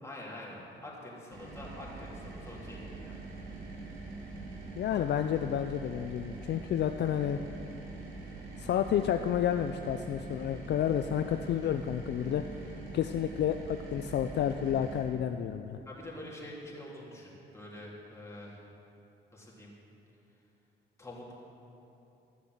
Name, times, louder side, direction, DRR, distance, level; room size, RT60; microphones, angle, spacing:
voice 1, 0.0-3.2 15.8-18.6 19.3-19.7 21.0-21.4, left 1 dB, 15° left, -5 dB, 3.3 m, -46 dB
sound 1, 1.3-15.0, right 3 dB, 75° right, 3.4 m, -44 dB
voice 2, 4.8-7.4 8.6-12.4 12.9-15.8, left 10 dB, 60° left, 8 dB, 0.5 m, -30 dB
13.5 x 7.0 x 7.9 m, 2.9 s
cardioid pair, 90°, 20 cm